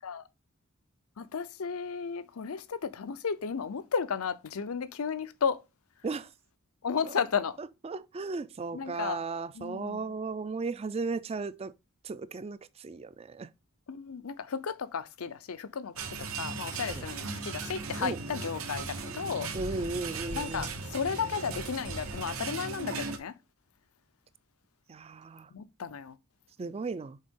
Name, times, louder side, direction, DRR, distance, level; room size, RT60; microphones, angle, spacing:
voice 1, 1.2-5.6 6.8-7.6 8.7-9.2 9.5-10.1 13.9-19.5 20.3-23.3 25.5-26.2, left 6 dB, 80° left, 0.6 m, -34 dB
voice 2, 7.6-11.7 12.0-13.5 16.9-17.0 18.0-18.2 19.5-20.7 24.9-25.5 26.6-27.2, right 4 dB, 30° right, 0.3 m, -36 dB
sound 1, 16.0-23.2, right 4 dB, 75° right, 1.0 m, -37 dB
6.4 x 4.3 x 3.6 m
head